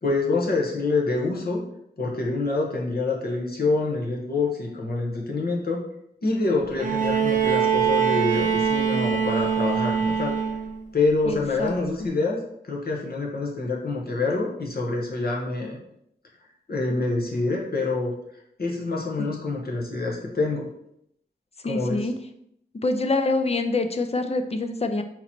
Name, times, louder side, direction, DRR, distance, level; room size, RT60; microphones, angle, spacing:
voice 1, 0.0-1.6 2.0-5.8 6.2-10.4 10.9-12.4 12.6-15.8 16.7-18.1 18.6-20.7 21.6-22.1, left 3 dB, 65° left, -2 dB, 1.1 m, -26 dB
Bowed string instrument, 6.8-10.8 12.1-12.2, right 7 dB, 50° right, 0.8 m, -23 dB
voice 2, 11.2-11.7 12.0-12.1 19.2-19.3 21.6-22.1 22.8-25.0, left 2 dB, 35° left, 7 dB, 0.5 m, -25 dB
3.9 x 2.9 x 4.3 m, 0.76 s
wide cardioid pair, 75°, 17 cm